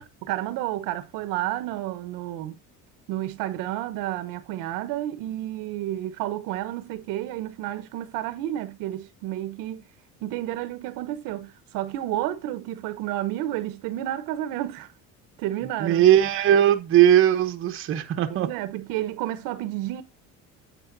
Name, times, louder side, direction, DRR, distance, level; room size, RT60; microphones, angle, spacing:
voice 1, 0.0-2.6 3.1-9.8 10.2-14.9 15.4-16.0 18.3-20.0, right 14 dB, 70° right, 1.0 m, -31 dB
voice 2, 15.8-18.5, right 11 dB, 40° right, 0.9 m, -19 dB
10.0 x 7.5 x 2.7 m
cardioid pair, 145°, 34 cm